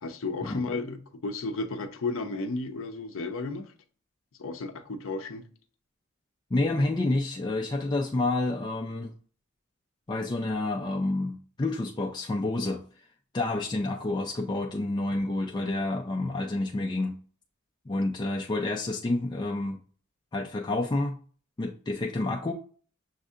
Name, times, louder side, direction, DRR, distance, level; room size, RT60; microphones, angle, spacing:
voice 1, 0.0-3.7 4.4-5.5, left 3 dB, 65° left, 0.6 m, -33 dB
voice 2, 6.5-9.1 10.1-12.8 13.3-17.1 17.9-19.8 20.3-21.2 21.6-22.5, left 2 dB, 20° left, 0.4 m, -29 dB
6.3 x 2.6 x 2.4 m
head